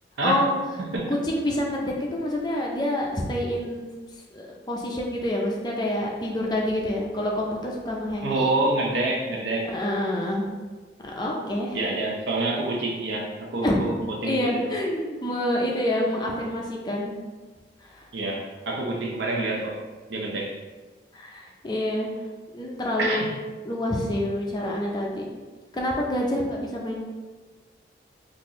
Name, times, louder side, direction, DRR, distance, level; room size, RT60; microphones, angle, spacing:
voice 1, 1.1-3.9 4.3-8.5 9.6-10.5 11.0-11.8 13.6-13.8 14.2-17.2 17.9-18.1 21.1-22.1 22.5-23.4 23.7-25.3 25.7-27.0, left 1 dB, 25° left, -2 dB, 0.4 m, -27 dB
voice 2, 8.2-9.7 11.7-14.5 18.1-19.8 20.1-20.6 23.0-23.3, right 2 dB, 85° right, -1 dB, 0.6 m, -27 dB
3.9 x 2.5 x 2.9 m, 1.3 s
head